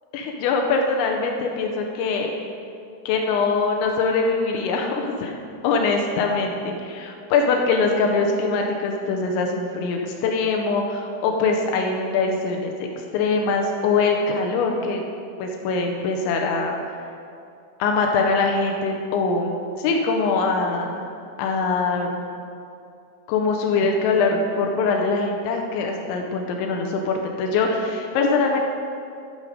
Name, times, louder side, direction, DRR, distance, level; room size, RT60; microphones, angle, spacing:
voice 1, 0.1-2.3 3.1-5.3 5.6-15.0 15.4-16.8 17.8-21.0 21.4-22.1 23.3-28.6, left 4 dB, 80° left, 2 dB, 3.0 m, -23 dB
12.5 x 5.3 x 5.0 m, 2.5 s
omnidirectional pair, 5.5 m